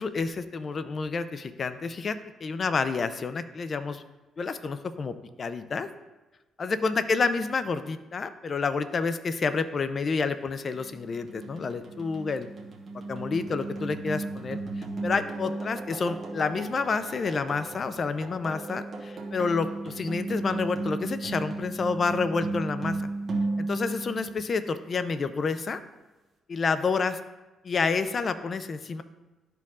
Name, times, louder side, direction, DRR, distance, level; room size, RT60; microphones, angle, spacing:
voice 1, 0.0-2.2 2.4-4.0 4.4-5.9 6.6-12.5 13.1-14.6 15.0-23.0 23.7-25.8 26.5-27.2 27.6-29.0, left 4 dB, 45° left, 11 dB, 0.4 m, -29 dB
sound 1, 10.7-24.9, right 2 dB, 45° right, 1.1 m, -35 dB
11.5 x 4.6 x 2.4 m, 1.1 s
cardioid pair, 90°, 0 cm